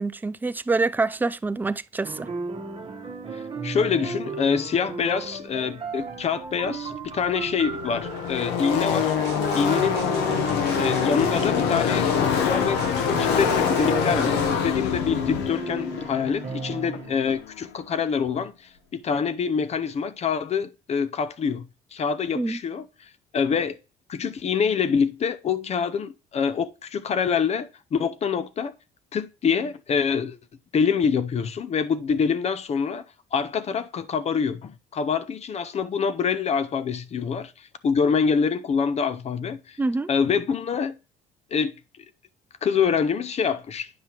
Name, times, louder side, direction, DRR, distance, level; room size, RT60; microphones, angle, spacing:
voice 1, 0.0-2.3 22.3-22.6 39.8-40.1, right 3 dB, 10° right, 0.3 m, -26 dB
sound 1, 2.0-17.2, right 4 dB, 35° right, 1.2 m, -36 dB
voice 2, 3.3-9.2 9.5-10.2 10.8-22.8 23.3-23.8 24.1-28.7 29.1-30.4 30.7-33.0 33.3-39.8 40.1-40.9 41.5-41.8 42.6-43.9, left 6 dB, 40° left, 0.6 m, -26 dB
Car passing by / Race car auto racing, 6.7-6.8 6.9-17.5, left 7 dB, 90° left, 0.9 m, -25 dB
sound 2, 8.9-14.5, right 8 dB, 75° right, 0.9 m, -39 dB
9.4 x 5.7 x 2.9 m
cardioid pair, 110°, 17 cm